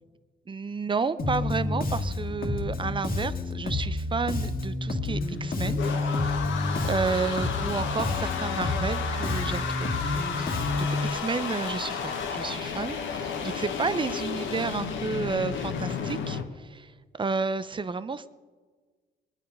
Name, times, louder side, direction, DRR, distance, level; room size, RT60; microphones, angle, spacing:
voice 1, 0.5-5.8 6.8-9.9 10.4-18.3, right 4 dB, 25° right, 14 dB, 0.7 m, -31 dB
Bass guitar, 1.2-11.1, left 2 dB, 45° left, 2.0 m, -29 dB
sound 1, 5.2-16.4, left 6 dB, 75° left, 1.6 m, -32 dB
22.0 x 10.0 x 5.5 m, 1.4 s
cardioid pair, 90°, 20 cm